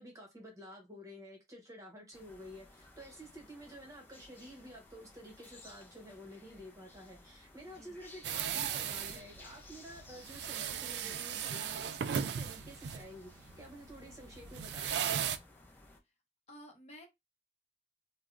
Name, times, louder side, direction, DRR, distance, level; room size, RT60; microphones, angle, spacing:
voice 1, 0.0-15.3, equal, 20° right, 0.9 m, -51 dB
sound 1, 2.1-16.0, left 2 dB, 10° left, 0.5 m, -57 dB
sound 2, 8.2-15.4, right 8 dB, 70° right, 0.3 m, -37 dB
voice 2, 16.5-17.1, equal, 40° left, 0.9 m, -53 dB
3.3 x 2.1 x 2.4 m
head